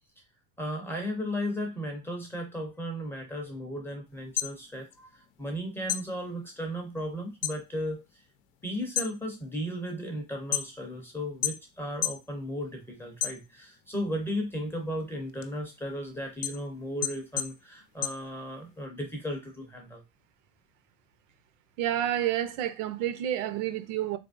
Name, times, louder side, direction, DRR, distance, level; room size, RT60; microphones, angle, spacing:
voice 1, 0.6-8.0 8.6-20.0, equal, 5° left, 0.4 m, -35 dB
sound 1, 4.2-5.5 5.8-7.6 8.0-8.4 8.8-11.0 11.4-12.3 12.6-13.8 14.3-18.8, left 12 dB, 85° left, 0.6 m, -33 dB
voice 2, 21.8-24.2, right 12 dB, 75° right, 0.6 m, -29 dB
3.7 x 3.4 x 2.5 m
cardioid pair, 165°, 39 cm